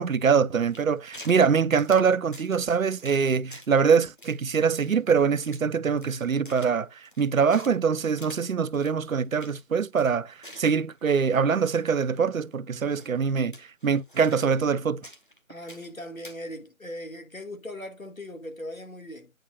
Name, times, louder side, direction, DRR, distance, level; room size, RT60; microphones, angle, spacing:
voice 1, 0.0-15.0, right 6 dB, 80° right, 0.6 m, -24 dB
sound 1, 0.7-1.5 1.8-2.7 3.0-3.2 3.5-3.8 4.2-5.7 6.0-7.8 8.2-8.4 8.7-8.9 9.2-9.6 9.9-11.8 12.1-12.2 12.9-13.2 13.5-14.7 15.0-15.9 16.2-16.4, left 1 dB, 40° left, 1.2 m, -48 dB
voice 2, 15.5-19.3, left 1 dB, 80° left, 2.2 m, -39 dB
8.9 x 4.8 x 2.5 m
figure-of-eight pair, 170°, 40 cm